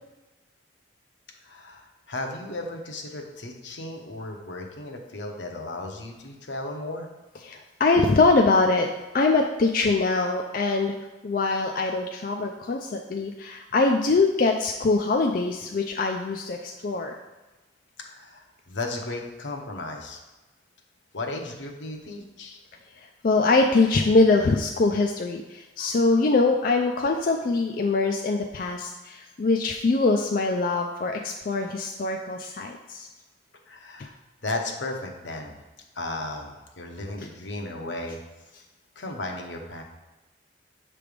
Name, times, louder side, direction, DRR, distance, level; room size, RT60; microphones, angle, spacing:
voice 1, 1.4-7.1 18.0-20.2 21.1-22.6 33.7-34.1 34.4-35.6 35.9-38.2 39.0-39.8, left 2 dB, 80° left, 2 dB, 1.0 m, -35 dB
voice 2, 7.4-8.9 9.1-10.9 11.2-17.1 23.0-33.1, left 3 dB, 50° left, 2 dB, 0.4 m, -23 dB
6.9 x 3.3 x 5.1 m, 1.1 s
head